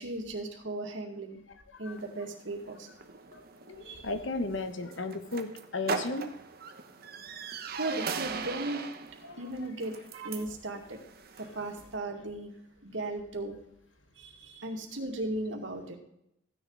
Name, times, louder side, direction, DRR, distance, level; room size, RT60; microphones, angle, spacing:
voice 1, 0.0-1.4 1.8-2.9 3.8-4.1 7.8-8.9 9.4-11.0 11.4-12.6 12.8-13.6 14.2-16.0, right 2 dB, 85° right, 2 dB, 2.3 m, -36 dB
sound 1, 1.9-12.0, right 5 dB, 55° right, 1.1 m, -40 dB
voice 2, 3.3-6.4 9.2-9.7 11.6-11.7, left 2 dB, 90° left, 9 dB, 1.4 m, -36 dB
15.5 x 10.0 x 4.1 m, 0.78 s
head